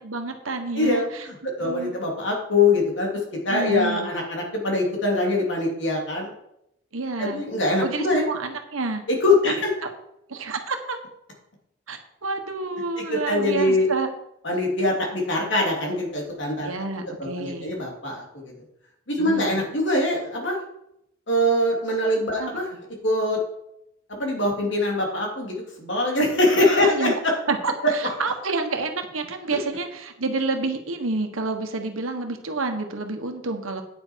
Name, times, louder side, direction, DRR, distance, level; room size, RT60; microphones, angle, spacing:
voice 1, 0.0-2.0 3.5-4.1 6.9-7.4 7.8-9.0 9.4-9.5 9.8-9.9 10.3-11.0 11.9-14.1 16.6-17.7 19.2-19.6 22.4-22.6 26.8-27.1 27.5-33.8, right 3 dB, 85° right, 5 dB, 1.5 m, -29 dB
voice 2, 0.7-3.1 3.4-6.3 7.2-8.2 9.1-9.6 13.1-13.9 14.4-16.7 17.2-18.5 19.1-20.6 21.3-22.7 23.0-23.4 24.1-27.3 27.8-27.9 29.5-29.6, left 2 dB, 60° left, -1 dB, 3.1 m, -23 dB
9.3 x 9.3 x 4.7 m, 0.80 s
head